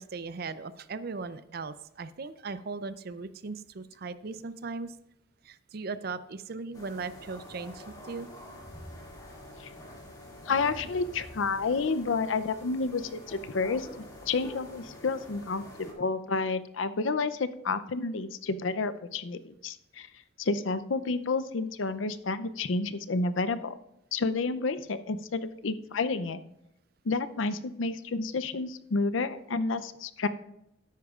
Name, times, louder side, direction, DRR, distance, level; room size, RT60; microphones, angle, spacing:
voice 1, 0.0-4.9 5.4-8.3, right 4 dB, 50° right, 14 dB, 0.5 m, -38 dB
sound 1, 6.7-15.9, left 1 dB, 20° left, 2.2 m, -47 dB
voice 2, 10.4-20.1 20.4-23.8 24.1-26.4 27.0-30.3, left 4 dB, 80° left, 12 dB, 0.6 m, -30 dB
13.0 x 10.5 x 2.4 m, 0.82 s
head